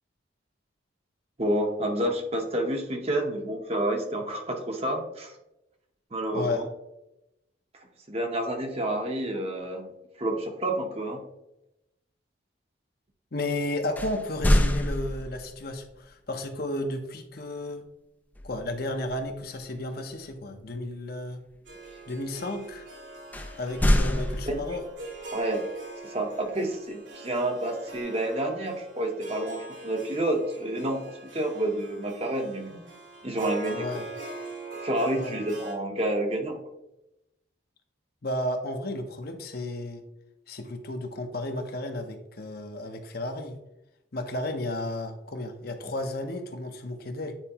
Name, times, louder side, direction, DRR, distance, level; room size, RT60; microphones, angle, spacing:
voice 1, 1.4-5.3 6.1-6.7 8.1-9.9 10.2-11.2 24.5-24.8 25.3-25.7 26.0-31.0 31.3-32.8 33.2-33.9 34.8-36.6, right 1 dB, 30° right, 3 dB, 0.8 m, -29 dB
voice 2, 6.3-6.6 13.3-17.8 18.4-21.4 22.1-22.9 23.6-24.8 33.7-34.1 35.1-35.4 38.2-40.0 40.5-43.6 44.1-47.3, left 1 dB, 50° left, 6 dB, 0.7 m, -33 dB
sound 1, 14.0-15.6 18.3-18.7 19.1-19.3 23.3-25.0, left 1 dB, 10° left, 0.4 m, -25 dB
Harp, 21.7-35.7, right 3 dB, 80° right, 2.2 m, -42 dB
9.0 x 4.4 x 2.9 m, 0.88 s
head